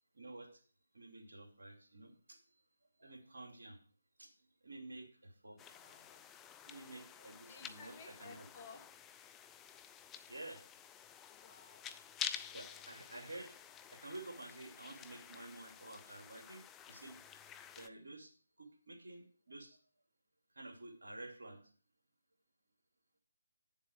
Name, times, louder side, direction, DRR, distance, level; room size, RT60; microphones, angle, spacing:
voice 1, 0.1-0.6 0.9-2.4 3.0-3.8 4.2-4.3 4.6-5.6 6.6-8.5 10.3-10.6 12.5-13.5 13.9-17.2 17.8-19.8 20.5-21.7, right 2 dB, 75° right, 4 dB, 2.5 m, -51 dB
voice 2, 5.5-6.3 7.5-8.9 11.3-12.0 12.3-13.1 13.7-13.9, left 4 dB, 30° left, 3 dB, 2.0 m, -58 dB
sound 1, 5.6-17.9, left 9 dB, 10° left, 0.4 m, -50 dB
9.1 x 7.4 x 4.7 m, 0.41 s
figure-of-eight pair, 150°, 0 cm